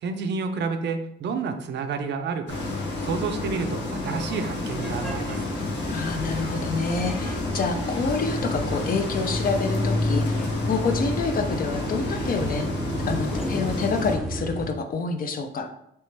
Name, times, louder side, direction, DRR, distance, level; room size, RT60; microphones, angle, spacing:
voice 1, 0.0-2.6 3.0-5.5, right 5 dB, 60° right, 7 dB, 0.5 m, -30 dB
sound 1, 2.5-14.2, left 2 dB, 65° left, 0.9 m, -30 dB
sound 2, 4.8-14.7, left 1 dB, ahead, 0.6 m, -31 dB
voice 2, 5.9-12.7 13.1-15.7, left 4 dB, 45° left, 7 dB, 0.5 m, -28 dB
3.3 x 3.0 x 3.2 m, 0.76 s
cardioid pair, 90°, 20 cm